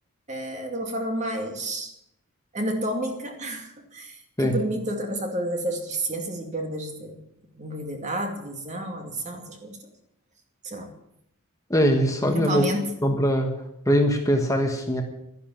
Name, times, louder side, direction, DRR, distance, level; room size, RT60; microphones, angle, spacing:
voice 1, 0.3-1.9 2.5-7.2 7.5-9.8 10.6-10.9 12.2-12.9, right 1 dB, 35° right, 4 dB, 2.3 m, -30 dB
voice 2, 11.7-12.7 13.0-13.5 13.9-15.0, equal, 15° left, 3 dB, 1.3 m, -22 dB
13.0 x 10.5 x 7.6 m, 0.79 s
head